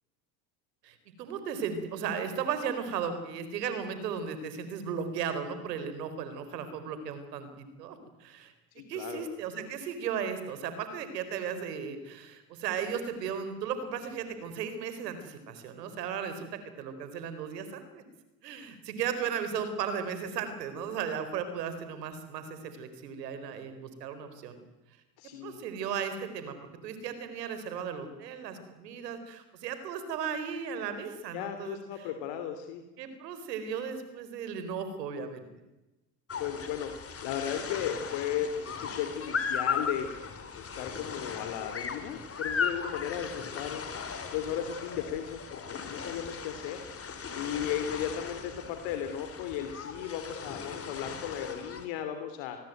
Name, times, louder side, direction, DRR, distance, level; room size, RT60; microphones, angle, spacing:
voice 1, 0.8-18.0 18.4-24.6 25.4-26.6 26.8-32.1 33.0-35.5, right 7 dB, 90° right, 10 dB, 4.5 m, -36 dB
voice 2, 8.7-9.3 25.2-25.6 31.3-32.8 36.4-36.9 37.2-40.2 40.5-43.8 44.3-46.8 47.3-52.6, left 9 dB, 65° left, 7 dB, 3.2 m, -35 dB
sound 1, 36.3-51.9, left 6 dB, 30° left, 3.8 m, -37 dB
27.5 x 20.0 x 9.3 m, 1.0 s
supercardioid pair, 95°, 47 cm